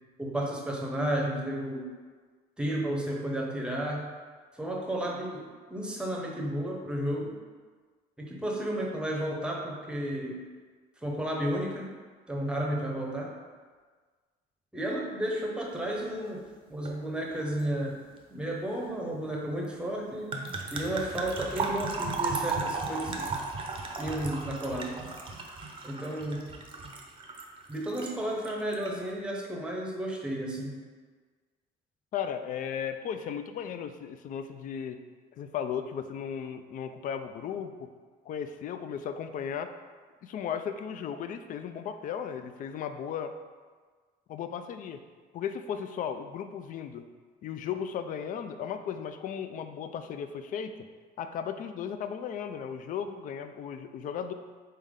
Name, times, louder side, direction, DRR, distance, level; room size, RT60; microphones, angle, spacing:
voice 1, 0.2-1.9 2.6-4.1 4.6-7.4 8.2-10.4 11.0-11.9 12.3-13.3 14.7-16.4 16.7-18.0 18.3-20.3 20.7-23.3 24.0-25.1 25.8-26.5 27.7-30.8, right 1 dB, 5° right, -2 dB, 0.8 m, -32 dB
sound 1, 16.9-17.0 17.3-17.6 20.3-28.1 28.4-28.9, right 4 dB, 30° right, 0.6 m, -35 dB
voice 2, 32.1-35.0 35.3-37.9 38.3-39.7 40.2-43.4 44.3-45.0 45.3-47.1 47.4-50.9 51.2-54.3, left 8 dB, 50° left, 9 dB, 0.4 m, -36 dB
4.3 x 3.4 x 3.6 m, 1.5 s
cardioid pair, 110°, 17 cm